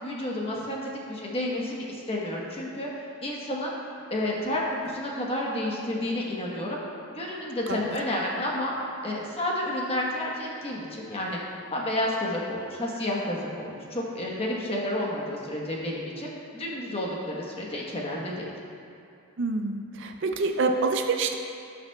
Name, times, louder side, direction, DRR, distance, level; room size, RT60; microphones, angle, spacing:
voice 1, 0.0-3.7 4.1-6.8 7.1-8.7 9.0-11.4 11.7-18.5, left 1 dB, 25° left, -3 dB, 1.1 m, -30 dB
voice 2, 19.4-21.3, right 3 dB, 55° right, 4 dB, 0.5 m, -26 dB
16.5 x 5.8 x 2.3 m, 2.6 s
head